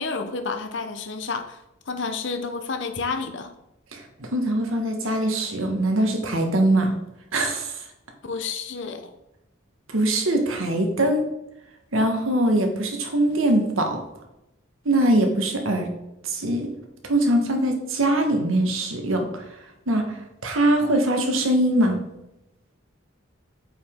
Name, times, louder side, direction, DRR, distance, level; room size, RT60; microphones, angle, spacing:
voice 1, 0.0-3.5 8.2-9.1, left 4 dB, 65° left, 7 dB, 0.8 m, -30 dB
voice 2, 3.9-6.9 7.3-7.8 9.9-11.2 11.9-14.0 14.8-15.9 16.2-16.7 17.1-19.3 19.9-20.2 20.4-22.0, right 1 dB, 85° right, 3 dB, 1.5 m, -22 dB
8.2 x 5.1 x 3.7 m, 0.89 s
head